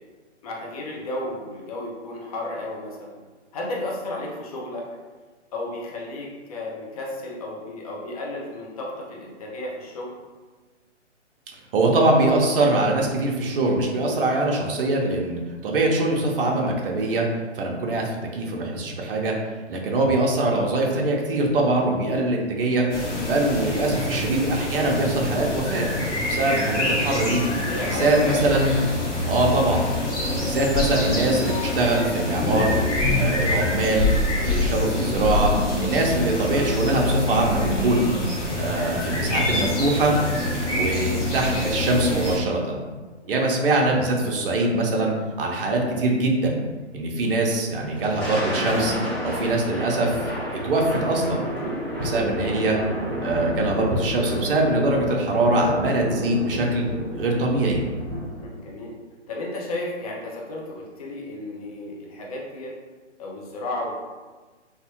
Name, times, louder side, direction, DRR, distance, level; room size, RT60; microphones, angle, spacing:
voice 1, 0.4-3.2 3.5-4.9 5.5-10.1 27.7-28.4 31.0-31.1 36.1-36.3 43.2-43.5 58.4-58.9 59.3-62.7 63.2-64.0, left 1 dB, 35° left, -2 dB, 0.5 m, -33 dB
voice 2, 11.7-17.3 17.6-19.4 19.7-22.9 23.2-25.9 26.2-27.4 27.9-28.7 29.3-29.9 30.4-32.7 33.2-34.1 34.4-35.5 35.8-38.1 38.6-40.1 40.7-42.8 43.3-46.6 46.9-48.9 49.2-50.2 50.6-51.4 52.0-52.8 53.2-56.8 57.1-57.8, right 2 dB, 50° right, 0 dB, 0.6 m, -23 dB
sound 1, 22.9-42.4, left 2 dB, 75° left, 1.2 m, -25 dB
Thunder, 47.9-58.5, equal, ahead, 1.0 m, -30 dB
3.2 x 2.1 x 2.8 m, 1.3 s
hypercardioid pair, 145°, 36 cm